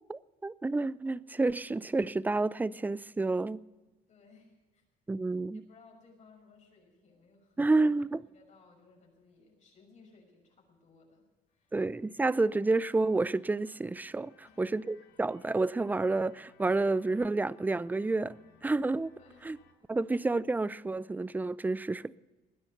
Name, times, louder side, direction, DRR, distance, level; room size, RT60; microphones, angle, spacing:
voice 1, 0.1-3.6 5.1-5.6 7.6-8.2 11.7-14.3 14.6-19.1 19.4-19.6 19.9-22.2, right 3 dB, 10° right, 0.4 m, -29 dB
voice 2, 4.1-4.8 5.5-7.6 8.3-11.8 14.4-14.8 19.2-19.5, left 4 dB, 45° left, 6.3 m, -60 dB
sound 1, 11.5-19.7, left 5 dB, 85° left, 3.1 m, -64 dB
20.0 x 10.0 x 6.8 m
cardioid pair, 110°, 17 cm